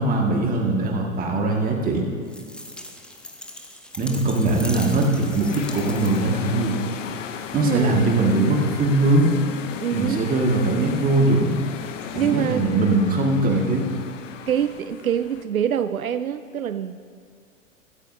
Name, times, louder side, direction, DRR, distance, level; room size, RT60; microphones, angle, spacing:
voice 1, 0.0-2.1 4.0-6.8 7.5-9.3 9.9-11.5 12.1-13.8, right 2 dB, 20° right, 0 dB, 2.0 m, -21 dB
sound 1, 2.3-6.5, left 1 dB, ahead, 0.6 m, -39 dB
sound 2, 4.1-15.4, left 8 dB, 65° left, 0.9 m, -36 dB
voice 2, 7.5-8.4 9.7-10.3 12.1-13.0 13.5-13.6 14.5-17.0, right 9 dB, 85° right, 12 dB, 0.5 m, -25 dB
16.0 x 13.5 x 2.8 m, 2.2 s
figure-of-eight pair, 100°, 41 cm